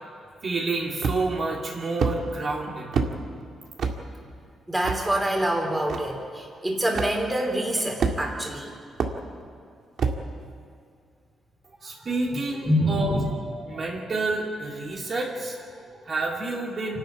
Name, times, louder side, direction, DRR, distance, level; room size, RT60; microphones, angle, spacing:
voice 1, 0.4-3.2 11.8-13.2 13.5-17.0, right 3 dB, 40° right, -2 dB, 2.5 m, -29 dB
sound 1, 1.0-1.4 2.0-2.2 2.9-3.1 3.8-4.0 4.8-5.0 5.9-6.0 6.9-7.1 8.0-8.4 9.0-9.2 10.0-10.2, right 5 dB, 60° right, 1.9 m, -25 dB
voice 2, 4.7-8.7 12.6-13.3, equal, 10° right, 1 dB, 3.3 m, -26 dB
28.0 x 12.5 x 9.2 m, 2.3 s
cardioid pair, 150°, 0 cm